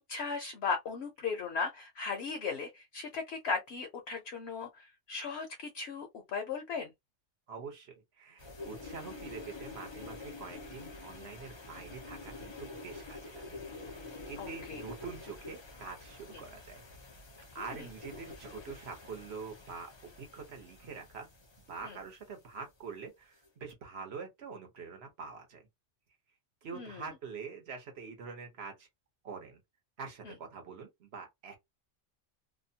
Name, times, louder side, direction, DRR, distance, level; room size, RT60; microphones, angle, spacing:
voice 1, 0.1-6.9 14.4-14.8 16.3-16.4 17.6-17.9 21.8-22.0 26.7-27.1 30.2-30.3, left 5 dB, 65° left, 0.9 m, -37 dB
voice 2, 7.5-16.8 17.5-19.9 20.2-21.3 21.7-25.7 26.6-28.9 29.2-29.6 30.0-31.6, right 5 dB, 60° right, 1.1 m, -45 dB
sound 1, 8.4-22.2 23.5-23.7, left 3 dB, 30° left, 0.5 m, -48 dB
2.8 x 2.1 x 2.7 m
omnidirectional pair, 1.2 m